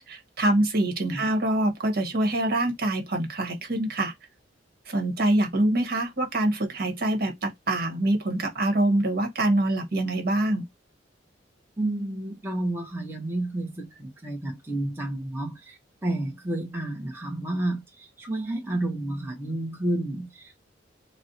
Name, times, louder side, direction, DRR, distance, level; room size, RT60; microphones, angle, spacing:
voice 1, 0.1-4.1 4.9-10.6, right 1 dB, 55° right, 1.2 m, -25 dB
voice 2, 11.8-20.6, right 1 dB, 10° right, 0.9 m, -31 dB
4.3 x 2.1 x 2.7 m
head